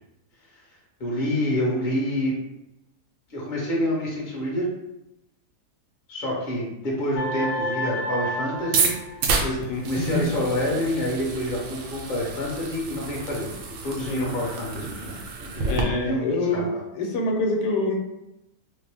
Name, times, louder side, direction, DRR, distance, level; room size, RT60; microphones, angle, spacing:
voice 1, 1.0-2.3 3.3-4.7 6.1-8.9 9.4-13.5 13.8-16.3 16.5-16.6, left 1 dB, 35° left, -4 dB, 1.0 m, -27 dB
sound 1, 7.1-9.8, right 1 dB, 70° left, 0.8 m, -30 dB
sound 2, 8.6-15.8, right 5 dB, 70° right, 0.7 m, -30 dB
voice 2, 9.7-10.3 14.1-14.3 15.6-16.7 16.9-17.9, left 2 dB, 90° left, 1 dB, 1.3 m, -25 dB
3.8 x 2.1 x 3.4 m, 0.88 s
omnidirectional pair, 1.8 m